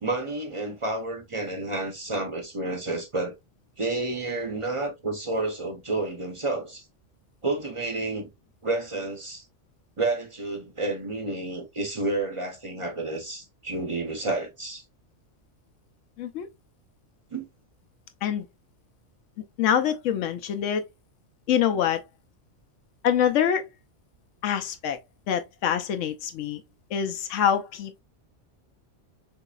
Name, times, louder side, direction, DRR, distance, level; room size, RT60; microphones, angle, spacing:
voice 1, 0.0-3.3 3.8-6.8 7.4-8.3 8.6-9.4 10.0-14.8 17.3-17.5, right 2 dB, 35° right, 0.5 m, -30 dB
voice 2, 19.6-20.8 21.5-22.0 23.0-23.7 24.4-25.0 25.3-26.6 26.9-28.0, left 9 dB, 90° left, 1.0 m, -25 dB
4.0 x 2.7 x 2.3 m
omnidirectional pair, 1.2 m